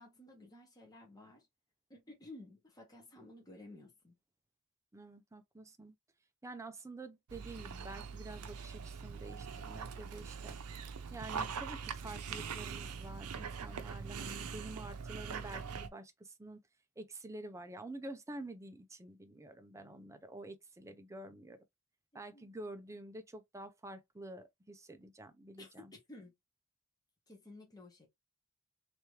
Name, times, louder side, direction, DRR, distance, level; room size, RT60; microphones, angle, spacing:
voice 1, 0.0-1.5 1.9-4.2 22.3-22.5 25.6-26.3 27.3-28.1, left 2 dB, 15° left, 1.4 m, -54 dB
voice 2, 4.9-5.9 6.4-10.6 11.1-16.6 17.0-21.6 22.1-25.9, right 2 dB, 15° right, 0.5 m, -48 dB
Dog, 7.3-15.9, right 6 dB, 85° right, 0.6 m, -43 dB
3.4 x 3.0 x 3.1 m
head